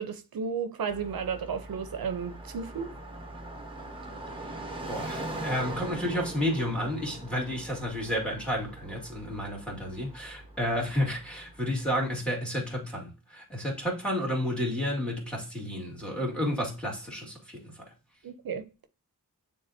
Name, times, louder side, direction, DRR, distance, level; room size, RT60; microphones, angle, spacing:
voice 1, 0.0-2.9 18.2-18.6, right 6 dB, 70° right, 0.6 m, -33 dB
Car passing by, 0.9-12.0, right 1 dB, 15° right, 1.1 m, -41 dB
voice 2, 4.9-17.6, equal, 5° left, 2.3 m, -31 dB
9.4 x 3.8 x 2.6 m
wide cardioid pair, 140°, 37 cm